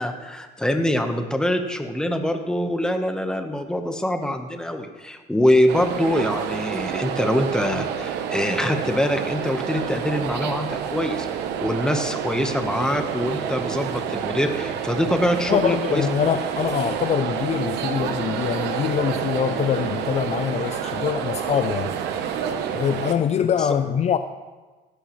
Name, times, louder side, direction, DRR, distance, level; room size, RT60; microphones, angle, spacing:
voice 1, 0.0-11.3 11.6-16.1, left 1 dB, 5° left, 6 dB, 1.1 m, -24 dB
sound 1, 5.7-23.1, right 8 dB, 85° right, 1.0 m, -28 dB
voice 2, 15.5-21.9 22.7-24.2, left 8 dB, 40° left, 10 dB, 0.5 m, -24 dB
16.0 x 11.0 x 3.1 m, 1.3 s
cardioid pair, 110°, 17 cm